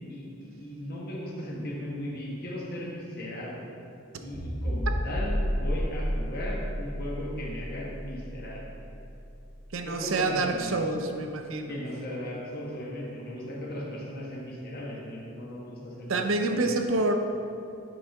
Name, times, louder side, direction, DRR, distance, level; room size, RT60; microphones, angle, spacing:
voice 1, 0.1-3.7 4.2-8.8 9.9-10.8 11.7-16.7, left 1 dB, 50° left, -4 dB, 1.2 m, -37 dB
sound 1, 4.3-8.8, equal, 25° left, 1.2 m, -31 dB
voice 2, 9.7-11.8 16.1-17.2, right 2 dB, 70° right, 5 dB, 0.6 m, -27 dB
10.0 x 4.1 x 3.5 m, 2.6 s
head